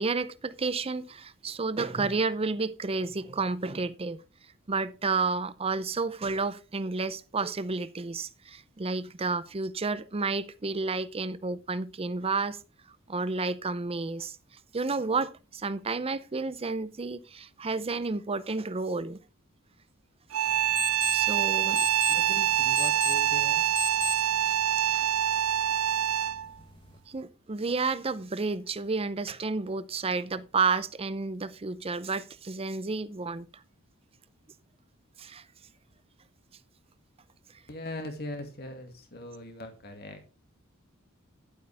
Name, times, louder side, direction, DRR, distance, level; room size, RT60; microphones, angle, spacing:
voice 1, 0.0-4.2 4.7-12.6 13.1-14.4 14.7-19.2 21.1-21.9 24.5-24.6 24.9-25.1 27.1-33.5 35.2-35.4, right 4 dB, 30° right, 0.6 m, -31 dB
sound 1, 20.3-26.5, right 11 dB, 90° right, 0.5 m, -25 dB
sound 2, 20.5-27.0, left 5 dB, 25° left, 1.1 m, -40 dB
voice 2, 22.1-23.7 37.7-40.3, left 1 dB, 50° left, 2.2 m, -40 dB
11.5 x 8.3 x 3.5 m
head